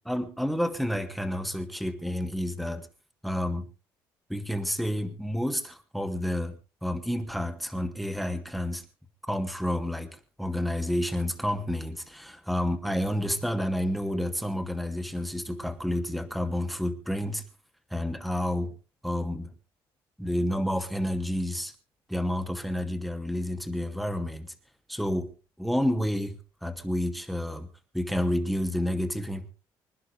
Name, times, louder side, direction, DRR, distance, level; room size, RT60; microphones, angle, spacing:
voice 1, 0.1-2.9 3.2-3.7 4.3-6.6 6.8-8.8 9.3-17.4 17.9-18.7 19.0-19.5 20.2-21.7 22.1-24.5 24.9-25.3 25.6-27.7 27.9-29.5, left 1 dB, ahead, 7 dB, 2.5 m, -30 dB
25.5 x 11.0 x 3.4 m, 0.33 s
supercardioid pair, 75°, 9 cm